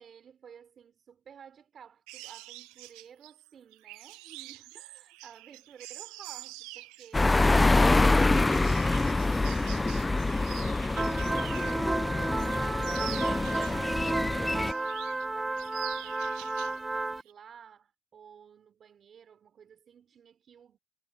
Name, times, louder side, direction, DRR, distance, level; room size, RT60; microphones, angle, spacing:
voice 1, 0.0-20.8, right 8 dB, 50° right, 4.3 m, -53 dB
sound 1, 2.1-11.9 12.2-14.1 14.5-15.3 15.6-16.8 17.1-17.3, right 18 dB, 90° right, 1.4 m, -46 dB
sound 2, 7.1-14.7, left 2 dB, 20° left, 0.7 m, -25 dB
sound 3, 11.0-17.2, right 2 dB, 20° right, 1.1 m, -32 dB
supercardioid pair, 75°, 0 cm